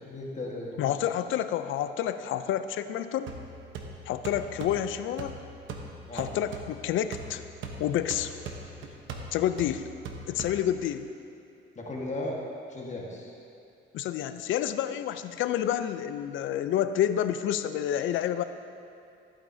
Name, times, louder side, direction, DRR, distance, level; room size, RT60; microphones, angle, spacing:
voice 1, 0.0-0.8 6.1-6.3 11.7-12.4 12.7-13.3, left 1 dB, 35° left, -2 dB, 1.5 m, -36 dB
voice 2, 0.8-3.3 4.1-5.4 6.1-7.4 7.8-8.3 9.3-9.9 10.3-11.1 13.9-18.4, left 10 dB, 80° left, 11 dB, 0.5 m, -29 dB
sound 1, 3.3-11.0, right 3 dB, 75° right, 1.0 m, -41 dB
14.5 x 8.8 x 2.7 m, 2.5 s
cardioid pair, 90°, 20 cm